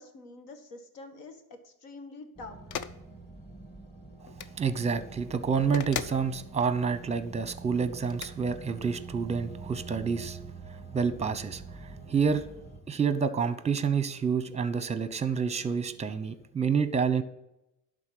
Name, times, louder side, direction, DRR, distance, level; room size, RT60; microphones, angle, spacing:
voice 1, 0.0-2.6, left 3 dB, 70° left, 7 dB, 1.7 m, -46 dB
sound 1, 2.4-12.8, right 4 dB, 15° left, 1.8 m, -45 dB
sound 2, 2.7-3.0 4.3-4.5 5.7-6.2 8.1-8.3, left 8 dB, 40° left, 0.7 m, -36 dB
voice 2, 4.6-10.4 10.9-12.4 12.9-17.2, right 6 dB, 15° right, 12 dB, 0.8 m, -28 dB
11.0 x 4.0 x 7.6 m, 0.88 s
supercardioid pair, 90°, 44 cm